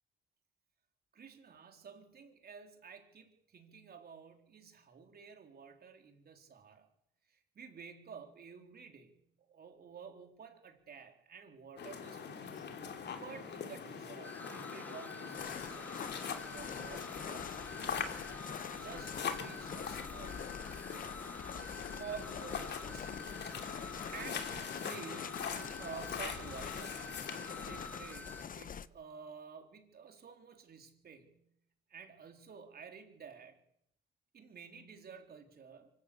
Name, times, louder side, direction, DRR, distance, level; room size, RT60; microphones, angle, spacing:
voice 1, 1.1-6.9 7.3-12.5 13.1-18.2 18.8-20.5 22.0-23.2 24.1-27.1 27.6-31.4 31.9-33.6 34.3-35.9, right 6 dB, 50° right, 5 dB, 3.8 m, -51 dB
sound 1, 11.8-27.9, left 6 dB, 60° left, 2.8 m, -43 dB
sound 2, 14.2-28.4, left 2 dB, 10° left, 1.0 m, -49 dB
sound 3, 15.3-28.9, left 7 dB, 45° left, 0.9 m, -46 dB
24.5 x 13.5 x 8.6 m, 0.77 s
cardioid pair, 90°, 20 cm